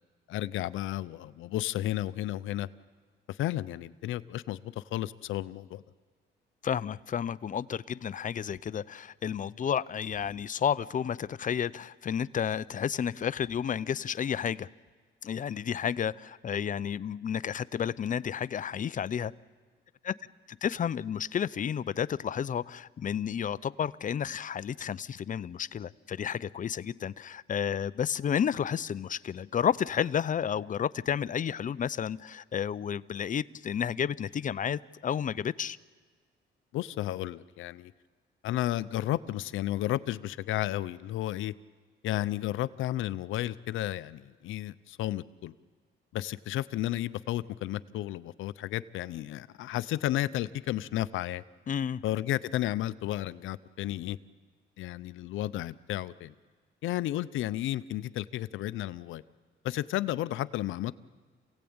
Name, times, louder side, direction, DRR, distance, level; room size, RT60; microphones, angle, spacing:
voice 1, 0.3-2.7 3.3-5.8 36.7-37.9 38.4-41.5 42.0-45.5 46.1-51.4 52.0-54.2 54.8-56.3 56.8-59.2 59.6-60.9, left 14 dB, 80° left, 14 dB, 0.7 m, -32 dB
voice 2, 6.6-14.7 15.2-19.3 20.0-20.1 20.5-35.8 51.7-52.0, left 8 dB, 40° left, 17 dB, 0.6 m, -31 dB
27.5 x 16.5 x 8.8 m, 1.5 s
cardioid pair, 90°, 20 cm